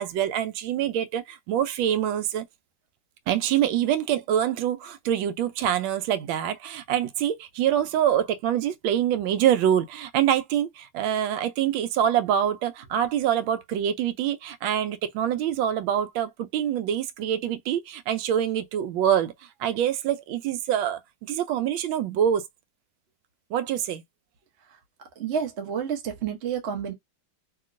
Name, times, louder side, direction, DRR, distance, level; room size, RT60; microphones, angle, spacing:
voice 1, 0.0-2.4 3.3-19.3 19.6-22.4 23.5-24.0, right 10 dB, 90° right, 1.3 m, -25 dB
voice 2, 25.2-26.9, right 7 dB, 50° right, 0.8 m, -29 dB
2.9 x 2.8 x 2.5 m
omnidirectional pair, 2.1 m